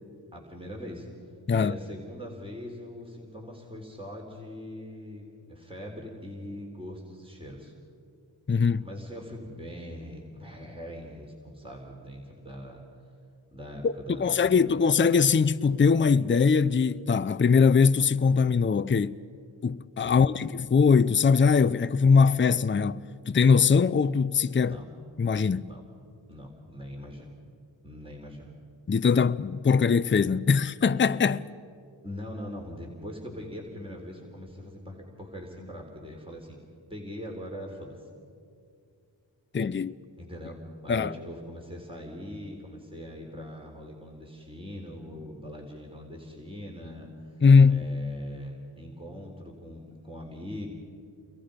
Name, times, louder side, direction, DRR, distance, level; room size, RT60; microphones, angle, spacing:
voice 1, 0.3-1.1 1.5-7.7 8.8-12.8 13.5-14.8 20.0-20.3 24.7-24.9 25.7-25.8 26.3-27.3 27.8-28.5 32.0-36.6 36.9-38.1 40.2-40.6 40.8-50.7, equal, 10° right, 3.9 m, -41 dB
voice 2, 8.5-8.8 13.8-13.9 14.2-19.2 19.6-24.8 25.2-25.7 28.9-31.5 39.5-39.9 40.9-41.1 47.4-47.8, left 5 dB, 25° left, 0.6 m, -21 dB
30.0 x 22.5 x 5.2 m
cardioid pair, 45°, 46 cm